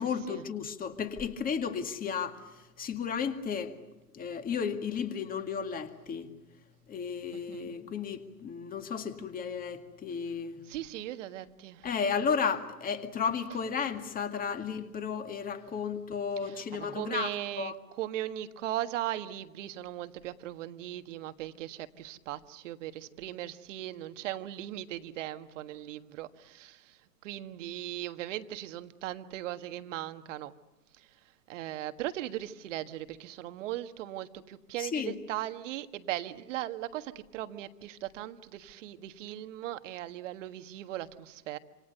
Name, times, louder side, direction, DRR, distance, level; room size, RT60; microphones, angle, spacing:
voice 1, 0.0-3.8 4.1-6.3 6.9-10.6 11.8-17.3 17.6-17.8 34.8-35.1, left 6 dB, 15° left, 7 dB, 2.1 m, -33 dB
voice 2, 7.3-7.7 10.7-11.9 16.4-27.0 27.2-30.5 31.0-31.1 31.5-41.6, right 13 dB, 50° right, 10 dB, 1.6 m, -38 dB
27.5 x 27.0 x 6.8 m, 1.0 s
hypercardioid pair, 115°, 48 cm